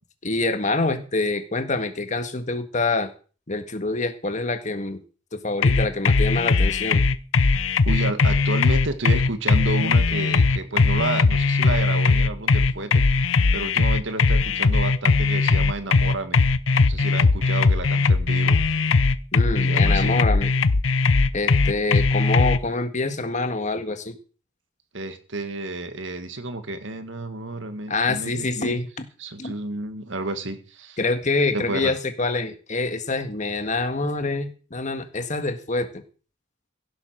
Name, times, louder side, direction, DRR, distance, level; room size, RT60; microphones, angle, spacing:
voice 1, 0.2-3.1 3.5-5.0 5.3-7.1 19.3-20.5 21.3-24.2 27.9-29.1 29.4-29.5 31.0-36.0, left 3 dB, 40° left, 8 dB, 1.7 m, -26 dB
sound 1, 5.6-22.6, left 3 dB, 85° left, 0.8 m, -19 dB
voice 2, 7.9-13.1 13.5-16.4 16.9-18.6 19.7-20.2 24.9-28.8 29.2-31.0 31.5-31.9, right 2 dB, 65° right, 9 dB, 1.9 m, -31 dB
16.5 x 7.8 x 6.5 m, 0.38 s
head